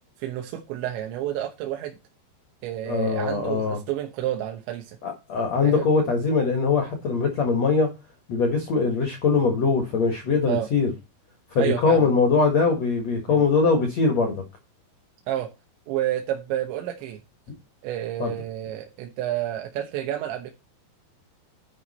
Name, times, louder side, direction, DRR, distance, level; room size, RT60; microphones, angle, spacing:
voice 1, 0.2-2.0 2.6-5.0 5.6-5.9 10.5-10.7 11.6-12.1 13.3-13.4 15.3-15.5 15.9-17.2 17.8-20.5, right 12 dB, 75° right, 3.3 m, -30 dB
voice 2, 2.8-3.8 5.0-7.9 8.3-10.9 11.5-14.4 18.2-18.3, left 4 dB, 65° left, 1.6 m, -22 dB
10.5 x 6.1 x 4.1 m
omnidirectional pair, 5.4 m